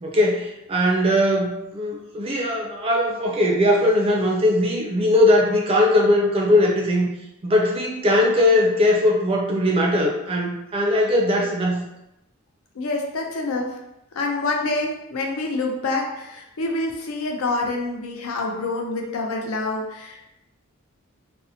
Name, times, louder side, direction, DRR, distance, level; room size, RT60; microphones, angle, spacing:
voice 1, 0.0-7.1 7.4-11.8, left 1 dB, 25° right, 0 dB, 0.4 m, -20 dB
voice 2, 12.7-13.8 14.2-20.3, left 2 dB, 80° left, 1 dB, 0.5 m, -27 dB
2.6 x 2.0 x 2.7 m, 0.88 s
head